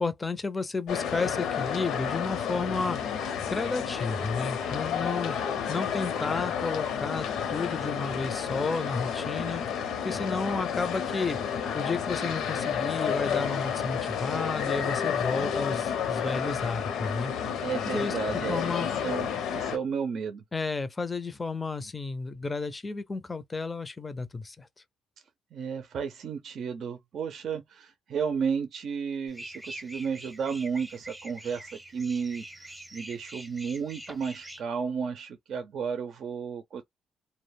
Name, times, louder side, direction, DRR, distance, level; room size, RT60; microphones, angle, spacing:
voice 1, 0.0-3.0 3.5-5.4 5.7-9.6 10.0-11.4 11.7-17.3 17.9-18.1 18.5-18.9 20.5-24.7, left 3 dB, 25° left, 0.5 m, -32 dB
sound 1, 0.9-19.8, left 8 dB, 80° left, 0.7 m, -31 dB
voice 2, 17.6-20.4 25.5-36.8, right 6 dB, 65° right, 0.5 m, -33 dB
sound 2, 29.3-34.6, right 1 dB, 10° right, 0.7 m, -45 dB
2.2 x 2.1 x 3.3 m
cardioid pair, 90°, 0 cm